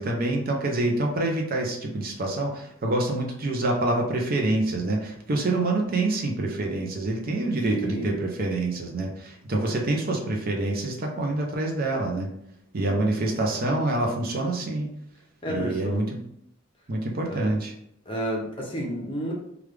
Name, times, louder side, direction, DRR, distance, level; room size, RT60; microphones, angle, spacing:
voice 1, 0.0-12.3 12.7-14.9 15.5-16.2 16.9-17.7, right 2 dB, 50° right, 1 dB, 0.6 m, -26 dB
voice 2, 7.7-8.1 12.9-13.0 15.4-16.0 17.3-17.5 18.1-19.3, equal, 25° left, -1 dB, 0.8 m, -31 dB
3.2 x 2.4 x 3.2 m, 0.75 s
head